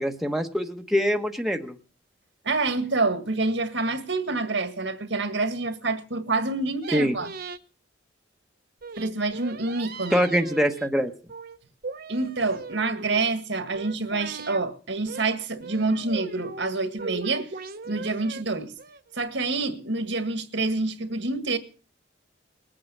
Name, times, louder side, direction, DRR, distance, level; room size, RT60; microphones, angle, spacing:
voice 1, 0.0-1.7 6.9-7.2 10.1-11.1, equal, ahead, 1.2 m, -24 dB
voice 2, 2.4-7.3 9.0-10.3 12.1-17.5 17.8-18.7 19.1-21.6, right 3 dB, 70° right, 1.8 m, -27 dB
sound 1, 6.8-7.6 8.8-10.9 11.3-11.6 11.8-13.3 13.7-14.6 15.1-15.3 15.6-16.7 17.0-18.4 18.8-19.2, right 3 dB, 55° right, 1.1 m, -39 dB
20.5 x 8.8 x 7.2 m
head